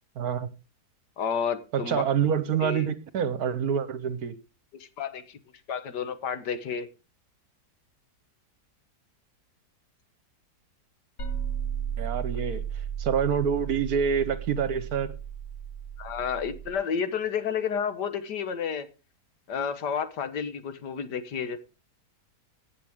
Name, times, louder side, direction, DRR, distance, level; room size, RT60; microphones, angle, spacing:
voice 1, 0.2-0.5 1.7-4.4 12.0-12.6 13.0-15.1, right 7 dB, 65° right, 1.4 m, -27 dB
voice 2, 1.2-2.0 2.6-2.9 5.0-5.4 5.7-6.9 12.3-12.4 16.0-18.9 19.5-21.6, left 7 dB, 75° left, 1.8 m, -31 dB
sound 1, 11.2-16.7, right 8 dB, 55° left, 2.2 m, -34 dB
17.5 x 7.6 x 3.6 m
omnidirectional pair, 1.8 m